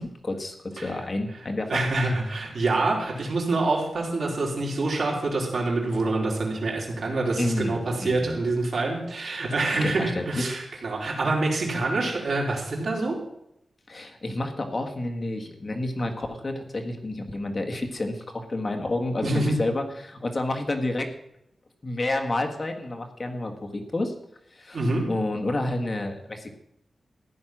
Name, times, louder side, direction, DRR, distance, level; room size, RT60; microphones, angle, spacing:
voice 1, 0.0-0.5 0.8-1.8 7.4-8.4 9.7-10.5 13.9-21.1 21.8-24.1 24.5-24.8 25.1-26.5, left 2 dB, 30° left, 3 dB, 1.6 m, -29 dB
voice 2, 1.7-13.2 19.2-19.6 24.7-25.1, right 2 dB, 65° right, -2 dB, 4.1 m, -26 dB
15.0 x 10.5 x 6.1 m, 0.80 s
wide cardioid pair, 150°, 0 cm